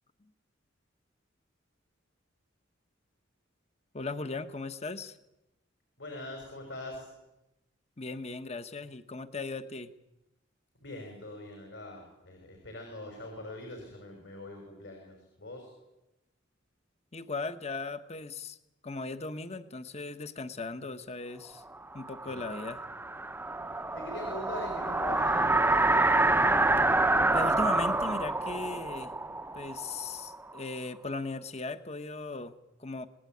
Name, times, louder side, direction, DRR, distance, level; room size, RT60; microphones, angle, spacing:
voice 1, 3.9-5.2 8.0-9.9 17.1-18.6 18.8-21.6 21.9-22.8 27.3-29.1 29.5-32.5 32.8-33.1, left 3 dB, 35° left, 11 dB, 1.2 m, -37 dB
voice 2, 6.0-7.1 10.8-15.7 22.2-22.5 23.9-26.1, left 1 dB, 65° left, 2 dB, 6.1 m, -43 dB
sound 1, 21.9-30.6, right 2 dB, 10° right, 0.8 m, -27 dB
26.5 x 19.5 x 9.4 m, 0.97 s
head